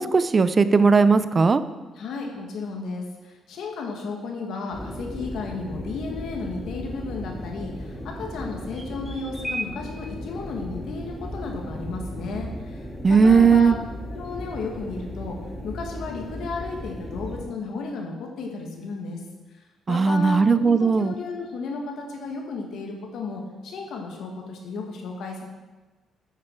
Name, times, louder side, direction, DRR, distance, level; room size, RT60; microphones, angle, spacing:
voice 1, 0.0-1.6 13.0-13.8 19.9-21.1, right 5 dB, 35° right, 13 dB, 0.5 m, -17 dB
voice 2, 2.0-13.8 14.1-15.4 15.6-19.2 19.9-25.4, left 4 dB, 75° left, 1 dB, 1.8 m, -34 dB
sound 1, 4.7-17.4, equal, 5° left, 2.6 m, -35 dB
8.9 x 8.5 x 4.6 m, 1.2 s
cardioid pair, 90°, 0 cm